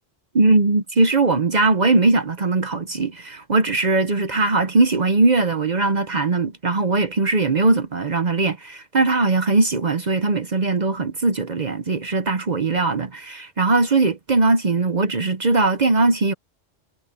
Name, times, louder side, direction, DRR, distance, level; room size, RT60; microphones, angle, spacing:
voice 1, 0.3-16.3, right 3 dB, 45° right, 0.9 m, -20 dB
omnidirectional pair, 1.2 m